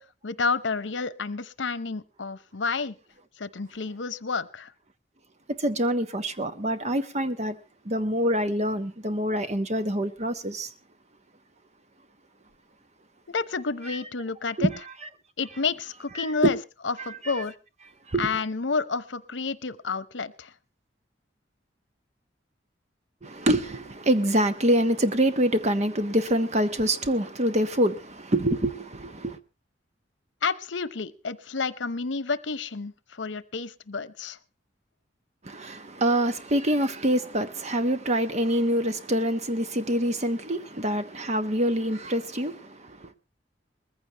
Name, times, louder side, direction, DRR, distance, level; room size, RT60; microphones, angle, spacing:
voice 1, 0.2-3.0 3.4-4.7 13.3-14.7 15.4-16.6 16.8-17.5 18.2-20.5 30.4-34.4, left 4 dB, 80° left, 0.9 m, -30 dB
voice 2, 5.5-7.6 7.8-10.7 13.9-14.0 14.6-14.8 16.2-16.5 17.0-17.4 18.1-18.3 23.2-29.4 35.4-43.1, right 1 dB, 40° right, 1.1 m, -26 dB
20.5 x 15.0 x 3.0 m
head